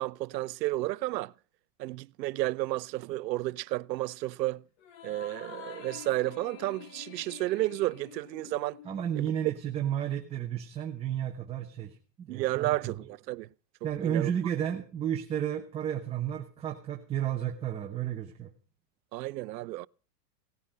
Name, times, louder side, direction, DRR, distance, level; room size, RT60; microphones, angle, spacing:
voice 1, 0.0-1.3 1.8-4.6 5.0-8.8 9.2-9.3 12.3-13.5 13.8-14.3 19.1-19.9, right 17 dB, 90° right, 0.7 m, -32 dB
sound 1, 4.8-9.5, left 9 dB, 50° left, 1.6 m, -48 dB
voice 2, 8.8-13.0 13.8-18.5, right 10 dB, 10° right, 0.8 m, -32 dB
18.0 x 9.5 x 6.3 m
supercardioid pair, 160°, 49 cm